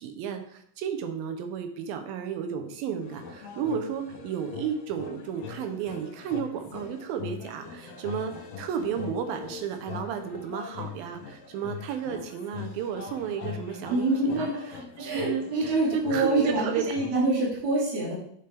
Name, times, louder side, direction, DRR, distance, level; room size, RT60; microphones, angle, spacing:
voice 1, 0.0-16.9, right 7 dB, 85° right, 7 dB, 2.6 m, -33 dB
sound 1, 3.0-17.3, left 5 dB, 80° left, 1.3 m, -41 dB
voice 2, 13.9-14.5 15.0-18.1, right 2 dB, 50° right, -6 dB, 3.4 m, -26 dB
8.9 x 5.3 x 3.4 m, 0.66 s
omnidirectional pair, 4.1 m